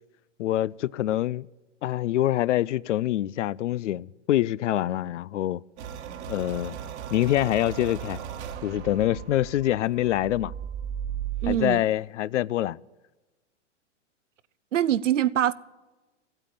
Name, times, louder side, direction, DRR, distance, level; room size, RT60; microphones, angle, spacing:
voice 1, 0.4-1.5 1.8-5.6 6.3-6.8 7.1-8.2 8.6-10.5 11.5-12.8, left 13 dB, 75° left, 0.5 m, -25 dB
sound 1, 5.8-11.7, right 9 dB, 65° right, 1.7 m, -36 dB
voice 2, 11.4-11.8 14.7-15.5, right 11 dB, 85° right, 0.7 m, -23 dB
15.5 x 9.0 x 9.0 m
hypercardioid pair, 110°, 37 cm